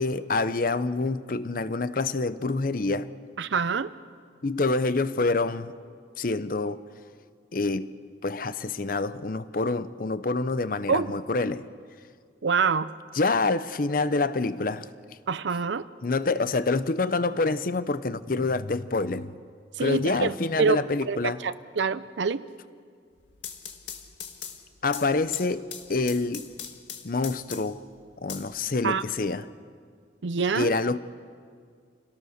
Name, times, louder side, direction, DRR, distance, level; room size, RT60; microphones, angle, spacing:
voice 1, 0.0-3.1 4.4-5.7 6.2-6.8 7.5-7.9 8.2-11.7 13.1-14.9 16.0-19.3 19.8-21.4 24.8-26.5 27.0-27.8 28.2-29.4 30.6-31.0, left 3 dB, 50° left, 0.7 m, -27 dB
voice 2, 3.4-3.9 10.9-11.2 12.4-12.9 15.3-15.9 19.8-20.3 20.6-22.4 28.8-29.0 30.2-30.7, right 5 dB, 80° right, 0.6 m, -26 dB
sound 1, 23.2-27.9 28.3-29.3, left 8 dB, 75° left, 1.7 m, -41 dB
28.0 x 17.5 x 6.6 m
head